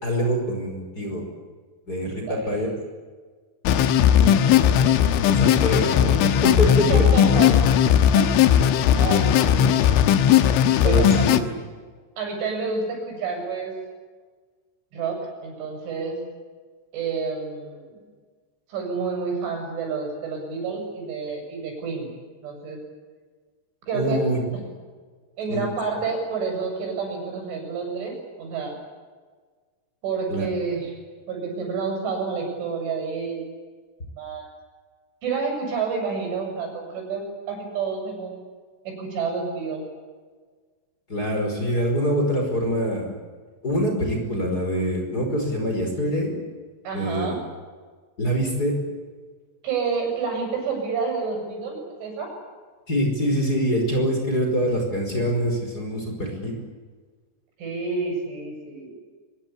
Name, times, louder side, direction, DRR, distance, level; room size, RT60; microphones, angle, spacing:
voice 1, 0.0-1.2 1.9-2.7 4.2-4.8 5.3-7.0 10.8-11.6 23.9-24.4 25.5-25.6 30.3-30.5 41.1-43.2 43.6-46.4 46.9-47.4 48.2-48.7 52.9-56.5, equal, 20° left, 2 dB, 5.4 m, -25 dB
voice 2, 2.0-2.7 6.7-7.6 8.1-10.0 10.6-11.4 12.2-13.7 14.9-16.2 16.9-18.0 18.7-22.1 22.4-22.8 23.9-24.2 25.4-28.8 30.0-30.9 31.3-33.5 34.2-34.5 35.2-38.3 38.8-39.9 46.8-47.4 49.6-52.3 57.6-58.9, right 5 dB, 75° right, 2 dB, 10.0 m, -29 dB
sound 1, 3.7-11.4, left 9 dB, 85° left, 3.8 m, -17 dB
24.5 x 23.0 x 8.5 m, 1.5 s
omnidirectional pair, 5.5 m